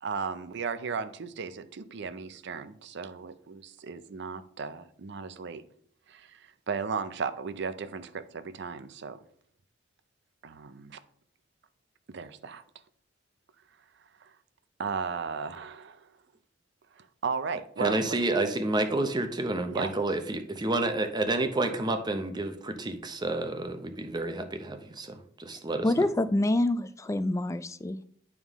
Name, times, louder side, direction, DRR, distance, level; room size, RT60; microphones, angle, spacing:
voice 1, 0.0-5.6 6.1-9.2 10.4-11.0 12.1-12.6 14.2-14.3 14.8-16.1 17.0-18.2 19.6-19.9, right 5 dB, 65° right, 0.5 m, -35 dB
voice 2, 17.8-25.9, right 2 dB, 20° right, 0.7 m, -29 dB
voice 3, 25.8-28.0, left 1 dB, 15° left, 0.3 m, -26 dB
10.5 x 3.6 x 3.6 m
head